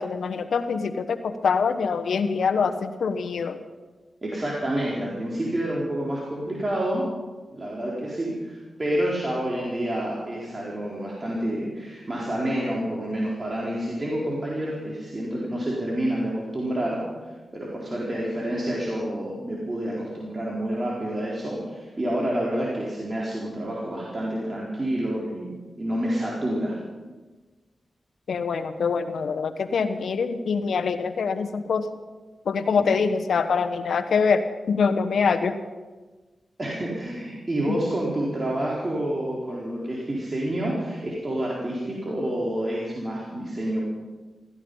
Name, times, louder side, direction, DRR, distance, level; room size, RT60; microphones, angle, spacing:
voice 1, 0.0-3.6 28.3-31.9 32.4-35.6, left 5 dB, 80° left, 9 dB, 1.1 m, -24 dB
voice 2, 4.2-7.1 7.5-26.8 32.8-32.9 36.6-43.8, right 1 dB, 40° right, -4 dB, 4.1 m, -28 dB
16.5 x 15.5 x 5.5 m, 1.3 s
cardioid pair, 40°, 0 cm